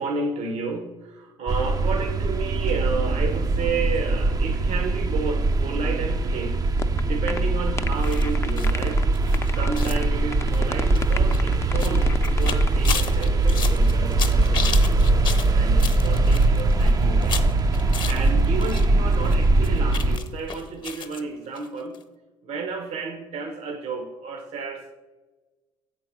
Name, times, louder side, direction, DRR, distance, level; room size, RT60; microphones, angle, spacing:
voice 1, 0.0-6.6 7.1-9.0 9.6-15.0 15.5-17.4 17.7-22.0 22.4-24.9, right 4 dB, 70° right, 5 dB, 1.0 m, -32 dB
sound 1, 1.5-20.2, right 2 dB, 30° right, 0.5 m, -21 dB
sound 2, 6.8-7.0 7.3-7.4 7.8-9.1 9.3-10.0 10.3-12.8, left 4 dB, 25° left, 0.5 m, -32 dB
sound 3, 8.0-18.9 19.1-21.2 21.5-21.7 21.9-22.0, left 6 dB, 40° left, 0.9 m, -34 dB
7.5 x 4.5 x 6.0 m, 1.2 s
supercardioid pair, 75°, 12 cm